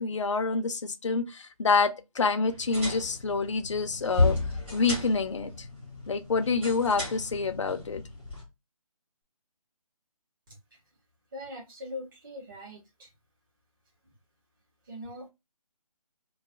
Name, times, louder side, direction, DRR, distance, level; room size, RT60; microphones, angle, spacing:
voice 1, 0.0-4.4 4.7-5.5 6.1-8.0, left 4 dB, 50° left, 0.6 m, -27 dB
sound 1, 2.5-8.4, left 2 dB, 5° right, 1.0 m, -33 dB
voice 2, 11.3-13.1 14.9-15.3, left 1 dB, 35° right, 1.3 m, -41 dB
3.0 x 2.6 x 2.6 m
figure-of-eight pair, 155°, 20 cm